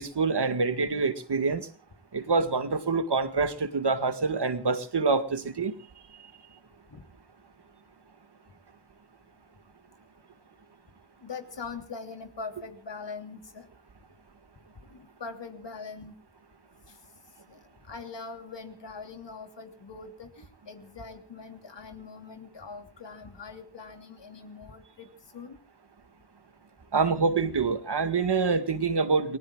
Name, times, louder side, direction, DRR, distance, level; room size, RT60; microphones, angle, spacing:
voice 1, 0.0-1.7 2.1-5.7 26.9-29.4, right 4 dB, 70° right, 10 dB, 2.0 m, -26 dB
voice 2, 11.2-13.7 14.9-16.1 17.5-17.6 17.9-25.1 25.3-25.6, left 4 dB, 90° left, 6 dB, 3.2 m, -42 dB
29.0 x 19.5 x 2.4 m, 0.38 s
wide cardioid pair, 90°, 42 cm